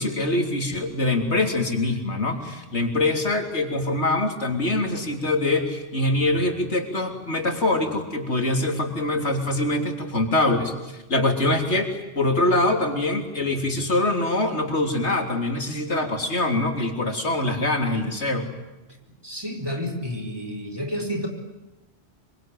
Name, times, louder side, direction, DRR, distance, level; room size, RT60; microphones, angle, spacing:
voice 1, 0.0-18.5, left 2 dB, 90° left, 4 dB, 3.7 m, -24 dB
voice 2, 19.2-21.3, equal, 20° right, 3 dB, 4.6 m, -30 dB
25.5 x 24.5 x 9.4 m, 1.0 s
omnidirectional pair, 1.1 m